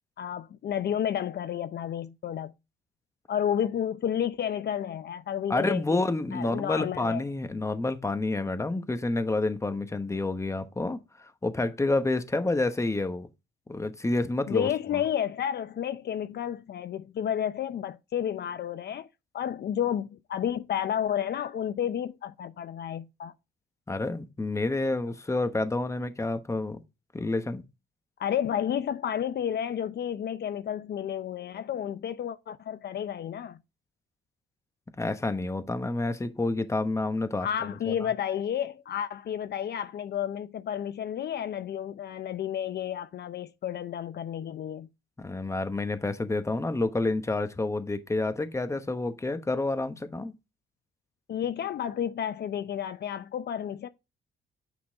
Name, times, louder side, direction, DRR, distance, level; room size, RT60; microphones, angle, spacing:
voice 1, 0.2-2.5 3.3-6.0 6.3-7.2 14.5-19.1 19.3-23.3 28.2-33.6 37.4-44.9 51.3-53.9, left 9 dB, 55° left, 0.6 m, -31 dB
voice 2, 5.5-13.3 13.7-15.0 23.9-26.8 27.1-27.6 34.9-37.9 45.2-50.3, left 2 dB, 15° left, 1.0 m, -29 dB
9.0 x 3.9 x 3.5 m
cardioid pair, 90°, 20 cm